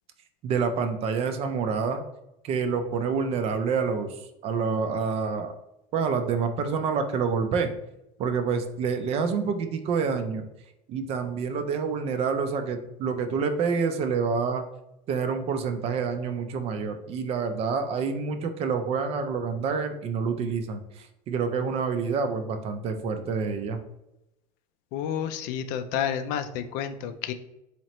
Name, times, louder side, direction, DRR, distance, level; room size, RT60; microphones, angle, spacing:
voice 1, 0.4-2.0 2.4-5.6 5.9-7.7 8.2-10.4 10.9-14.6 15.1-23.8, right 5 dB, 35° right, 8 dB, 0.4 m, -27 dB
voice 2, 24.9-27.3, left 9 dB, 60° left, 9 dB, 0.4 m, -30 dB
4.1 x 2.8 x 3.0 m, 0.88 s
cardioid pair, 150°, 17 cm